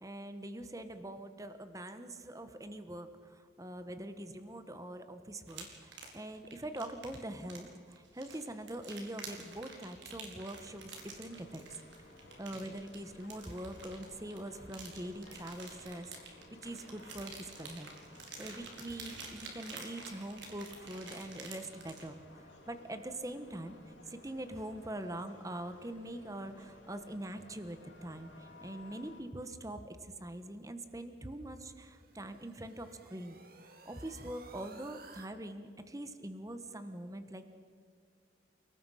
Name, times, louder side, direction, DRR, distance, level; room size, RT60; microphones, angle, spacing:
voice 1, 0.0-11.6 12.4-17.9 18.4-23.8 24.1-33.4 33.8-37.6, right 1 dB, 15° right, 9 dB, 1.1 m, -43 dB
sound 1, 5.5-22.1, right 4 dB, 65° right, 4.2 m, -49 dB
sound 2, 10.5-29.2, left 2 dB, 70° left, 6.4 m, -57 dB
sound 3, 31.3-35.3, right 3 dB, 50° right, 1.9 m, -57 dB
29.5 x 19.0 x 5.7 m, 2.2 s
head